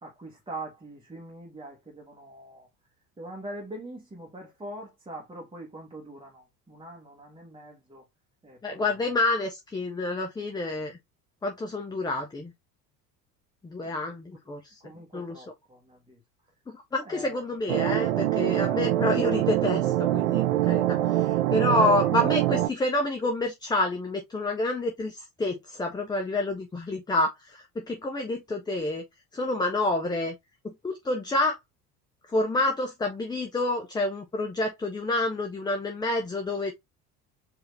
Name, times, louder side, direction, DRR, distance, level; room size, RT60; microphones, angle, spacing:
voice 1, 0.0-2.7 3.2-8.0 8.4-8.9 13.8-14.0 14.8-16.2 17.0-17.6, right 1 dB, 10° right, 1.3 m, -43 dB
voice 2, 8.6-10.9 11.4-12.5 13.6-14.8 15.1-15.4 16.7-29.0 29.3-30.3 30.6-31.6 32.3-36.7, left 2 dB, 10° left, 0.6 m, -28 dB
sound 1, 17.7-22.7, right 14 dB, 55° right, 0.6 m, -24 dB
4.8 x 2.7 x 3.1 m
figure-of-eight pair, 65°, 48 cm